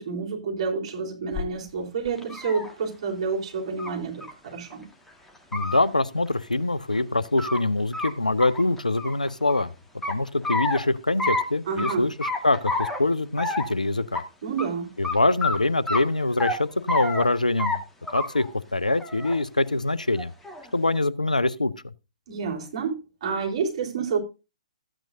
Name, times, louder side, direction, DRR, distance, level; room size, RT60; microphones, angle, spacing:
voice 1, 0.0-4.9 11.7-12.1 14.4-14.9 22.3-24.2, right 5 dB, 50° right, 3.9 m, -29 dB
sound 1, 1.3-1.4 2.1-2.7 3.8-3.9 4.2-4.3 4.7-4.8 5.4-5.8 6.9-7.6 7.9-8.1 8.4-9.6 10.0-10.8 11.2-11.4 11.8-11.9 12.2-13.0 13.4-13.7 14.1-14.2 14.6-14.7 15.0-15.1 15.4-15.6 15.9-16.6 16.9-17.3 17.6-17.8 18.1-18.5 18.9-19.4 20.2-20.7, left 2 dB, 5° left, 1.6 m, -28 dB
voice 2, 5.5-9.7 10.1-14.2 15.0-17.8 18.1-18.5 18.7-20.3 20.7-21.7, left 2 dB, 85° left, 0.7 m, -24 dB
14.0 x 9.0 x 2.6 m
figure-of-eight pair, 120°, 4 cm